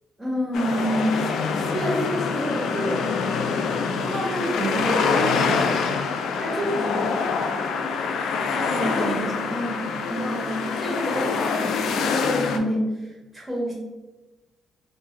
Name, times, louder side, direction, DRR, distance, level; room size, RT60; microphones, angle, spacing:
voice 1, 0.2-1.2 1.7-3.2 6.4-7.2 8.8-13.7, equal, 5° right, -5 dB, 1.3 m, -28 dB
sound 1, 0.5-12.6, left 5 dB, 75° left, 0.3 m, -25 dB
voice 2, 4.0-5.8 8.5-9.2, right 2 dB, 40° right, -3 dB, 0.6 m, -29 dB
3.5 x 2.1 x 3.2 m, 1.1 s
cardioid pair, 90°, 0 cm